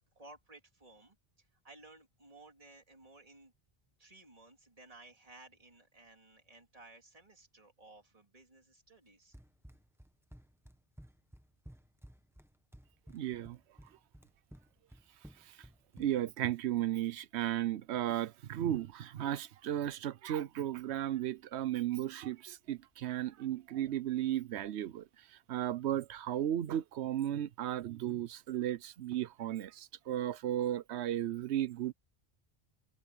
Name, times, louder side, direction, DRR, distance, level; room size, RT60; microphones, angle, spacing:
voice 1, 0.2-3.5 4.0-9.4, right 2 dB, 35° right, 3.7 m, -57 dB
Run, 9.3-16.4, equal, ahead, 1.3 m, -55 dB
voice 2, 13.1-13.6 16.0-25.0 25.5-31.9, right 12 dB, 85° right, 0.9 m, -35 dB
omnidirectional pair, 1.1 m